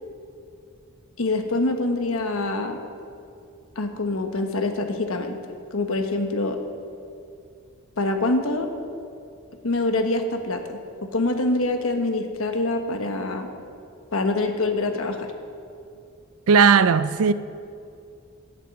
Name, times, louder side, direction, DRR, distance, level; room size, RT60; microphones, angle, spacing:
voice 1, 1.2-2.8 3.8-5.4 5.7-6.6 8.0-8.7 9.6-10.8 11.1-13.5 14.1-15.3, left 2 dB, 75° left, 1.2 m, -25 dB
voice 2, 16.5-17.3, right 6 dB, 85° right, 0.4 m, -16 dB
10.5 x 7.7 x 8.2 m
head